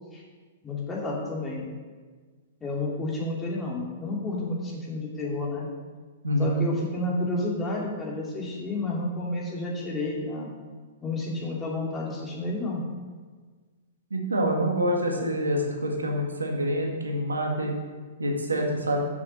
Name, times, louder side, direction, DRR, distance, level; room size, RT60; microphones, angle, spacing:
voice 1, 0.6-1.7 2.6-5.7 6.4-10.5 11.0-12.8, left 2 dB, 15° left, -4 dB, 2.7 m, -30 dB
voice 2, 6.2-6.7 14.1-17.7 18.2-19.1, equal, 90° right, 0 dB, 1.9 m, -26 dB
7.0 x 6.6 x 6.4 m, 1.5 s
hypercardioid pair, 115°, 0 cm